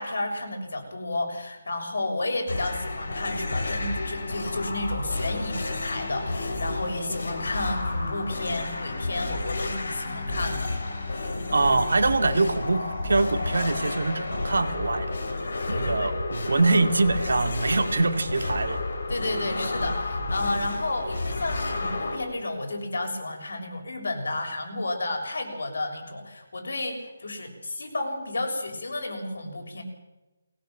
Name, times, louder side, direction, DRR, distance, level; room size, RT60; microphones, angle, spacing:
voice 1, 0.0-10.7 15.7-16.1 19.1-29.8, left 2 dB, 70° left, 4 dB, 6.7 m, -32 dB
sound 1, 2.3-15.9, left 5 dB, 35° left, 2.0 m, -45 dB
sound 2, 2.5-22.2, left 2 dB, 55° left, 5.5 m, -31 dB
voice 2, 11.5-15.1 15.7-18.8, right 3 dB, 70° right, 8 dB, 2.4 m, -24 dB
21.5 x 18.5 x 7.8 m, 1.1 s
hypercardioid pair, 180°, 0 cm